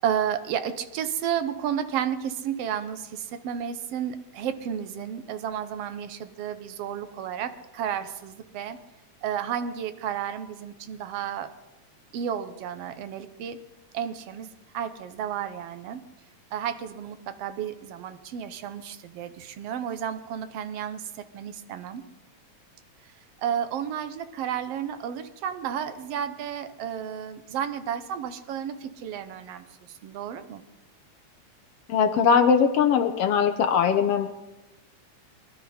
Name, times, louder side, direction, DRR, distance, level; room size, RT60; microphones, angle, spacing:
voice 1, 0.0-8.8 9.2-11.5 12.1-13.6 13.9-14.5 14.7-16.0 16.5-22.0 23.4-30.6, right 9 dB, 65° right, 10 dB, 1.7 m, -32 dB
voice 2, 31.9-34.3, left 6 dB, 70° left, 6 dB, 1.6 m, -21 dB
22.5 x 12.0 x 4.3 m, 1.0 s
omnidirectional pair, 3.3 m